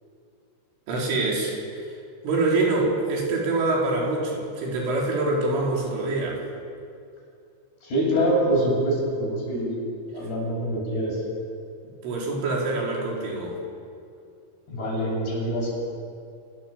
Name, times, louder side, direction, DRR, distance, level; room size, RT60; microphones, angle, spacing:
voice 1, 0.9-1.5 1.9-2.0 2.2-6.4 12.0-13.6, right 2 dB, 80° right, -2 dB, 6.8 m, -25 dB
voice 2, 7.8-9.7 10.1-11.2 14.7-15.7, right 1 dB, 55° left, -3 dB, 9.4 m, -25 dB
28.5 x 20.5 x 7.5 m, 2.4 s
omnidirectional pair, 5.6 m